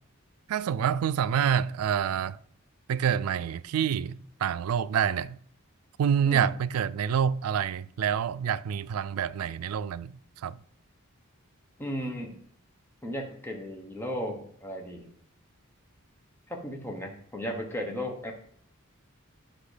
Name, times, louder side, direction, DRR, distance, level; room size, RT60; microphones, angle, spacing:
voice 1, 0.5-2.4 2.9-5.4 6.0-10.1 10.4-10.5, right 8 dB, 85° right, 0.3 m, -27 dB
voice 2, 11.8-12.4 13.0-15.1 16.5-18.3, equal, 10° left, 1.1 m, -35 dB
8.5 x 5.7 x 5.0 m
head